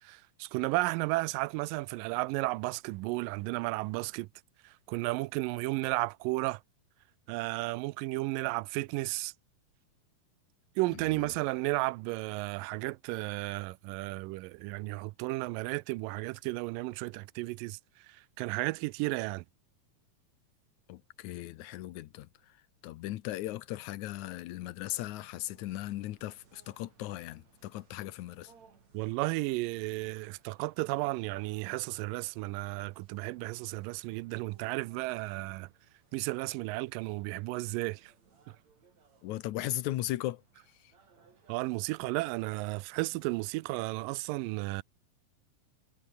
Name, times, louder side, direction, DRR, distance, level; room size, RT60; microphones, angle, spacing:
voice 1, 0.0-4.3 4.6-6.6 7.3-9.3 10.8-19.5 28.9-35.7 36.1-38.1 38.5-38.6 41.5-44.8, right 21 dB, 80° right, 2.1 m, -33 dB
voice 2, 20.9-22.3 22.8-28.5 39.2-40.4, left 15 dB, 70° left, 1.9 m, -37 dB
sound 1, 24.9-43.9, right 5 dB, 50° right, 5.0 m, -66 dB
omnidirectional pair, 4.1 m